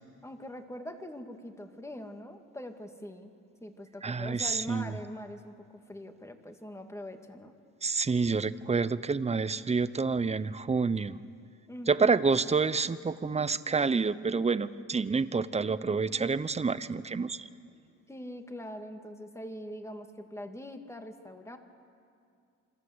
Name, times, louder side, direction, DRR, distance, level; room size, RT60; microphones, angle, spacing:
voice 1, 0.2-3.3 3.6-7.5 11.7-12.2 18.1-21.6, left 1 dB, 10° left, 5 dB, 2.3 m, -43 dB
voice 2, 4.0-4.9 7.8-11.2 11.9-17.5, right 4 dB, 20° right, 15 dB, 0.9 m, -28 dB
27.5 x 24.0 x 8.1 m, 2.4 s
cardioid pair, 95°, 33 cm